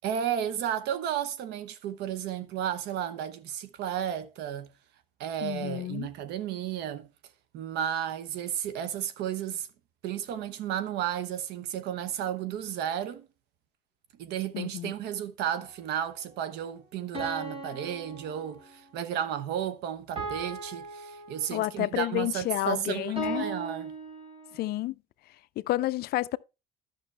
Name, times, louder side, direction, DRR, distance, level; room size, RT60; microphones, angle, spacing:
voice 1, 0.0-4.7 5.2-7.1 7.5-9.7 10.0-13.3 14.2-23.9, right 10 dB, 85° right, 0.9 m, -33 dB
voice 2, 5.4-6.1 14.5-14.9 21.5-23.5 24.5-25.0 25.6-26.4, left 16 dB, 65° left, 0.4 m, -30 dB
sound 1, 15.5-15.7 17.1-18.9 20.2-21.9 23.2-24.7, right 2 dB, 35° right, 3.0 m, -38 dB
11.5 x 6.0 x 3.3 m
cardioid pair, 110°, 17 cm